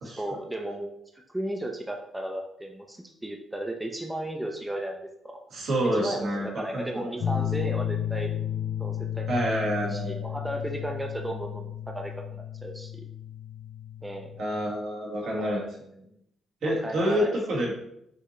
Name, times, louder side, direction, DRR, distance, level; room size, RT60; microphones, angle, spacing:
voice 1, 0.0-1.0 1.3-5.0 5.2-5.4 5.8-8.3 8.8-9.5 9.8-13.0 14.0-14.3 15.2-16.0 16.6-17.4, right 1 dB, 10° right, 2 dB, 0.5 m, -35 dB
voice 2, 5.5-7.1 9.3-10.3 14.4-15.6 16.6-17.7, equal, 70° right, -3 dB, 1.7 m, -28 dB
sound 1, 7.2-14.4, left 10 dB, 55° left, 0.4 m, -33 dB
5.6 x 2.8 x 3.1 m, 0.75 s
cardioid pair, 90°, 0 cm